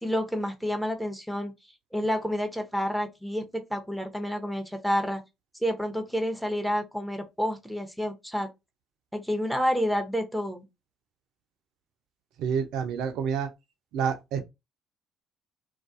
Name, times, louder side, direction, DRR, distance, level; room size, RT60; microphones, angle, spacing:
voice 1, 0.0-1.5 1.9-5.2 5.6-8.5 9.1-10.6, equal, ahead, 0.7 m, -29 dB
voice 2, 12.4-13.5 13.9-14.4, right 7 dB, 65° right, 0.4 m, -28 dB
2.4 x 2.3 x 2.4 m
hypercardioid pair, 50°, 0 cm